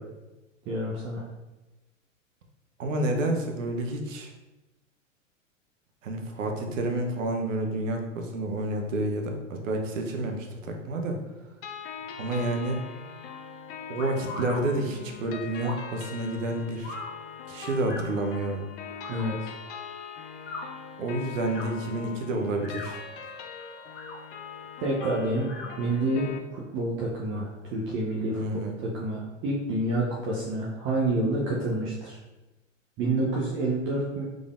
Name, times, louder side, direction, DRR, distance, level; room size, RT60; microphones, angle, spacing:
voice 1, 0.7-1.3 19.1-19.5 24.8-32.2 33.0-34.2, right 1 dB, 30° right, -4 dB, 0.6 m, -28 dB
voice 2, 2.8-4.3 6.0-11.2 12.2-12.8 13.9-17.0 17.5-18.7 21.0-23.0 28.3-28.7, right 2 dB, 75° right, 3 dB, 0.8 m, -29 dB
sound 1, 11.6-26.4, left 6 dB, 45° left, 0.4 m, -41 dB
sound 2, 14.0-14.6 15.6-15.9 16.8-17.1 17.9-18.1 19.0-19.2 20.3-20.6 21.4-21.7 22.5-23.0 23.8-24.2 25.4-25.7, left 2 dB, 20° left, 1.4 m, -39 dB
3.8 x 3.4 x 2.4 m, 1.1 s
hypercardioid pair, 105°, 39 cm